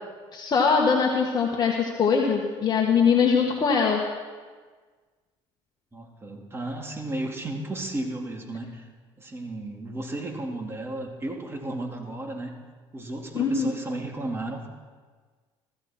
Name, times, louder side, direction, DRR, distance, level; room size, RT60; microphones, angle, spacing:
voice 1, 0.3-4.0 13.3-13.7, left 6 dB, 35° left, 0 dB, 1.7 m, -22 dB
voice 2, 5.9-8.9 9.2-12.6 12.9-14.7, right 1 dB, 20° right, 1 dB, 2.7 m, -34 dB
16.5 x 15.0 x 4.5 m, 1.5 s
supercardioid pair, 95°, 11 cm